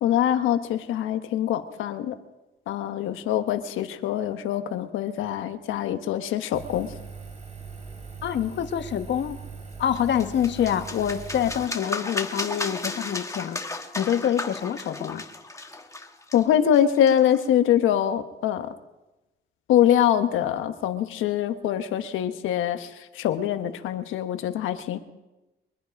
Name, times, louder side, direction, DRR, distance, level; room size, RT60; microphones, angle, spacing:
voice 1, 0.0-2.1 2.7-6.9 16.3-18.7 19.7-22.9 23.1-25.0, left 10 dB, 85° left, 9 dB, 1.2 m, -24 dB
Engine, 6.5-11.7, right 5 dB, 35° right, 4.6 m, -41 dB
voice 2, 8.2-9.4 9.8-13.6 13.9-15.2, left 9 dB, 65° left, 9 dB, 1.2 m, -26 dB
sound 1, 9.9-17.5, left 2 dB, 15° left, 1.4 m, -34 dB
23.5 x 10.5 x 5.3 m, 1.0 s
cardioid pair, 90°, 20 cm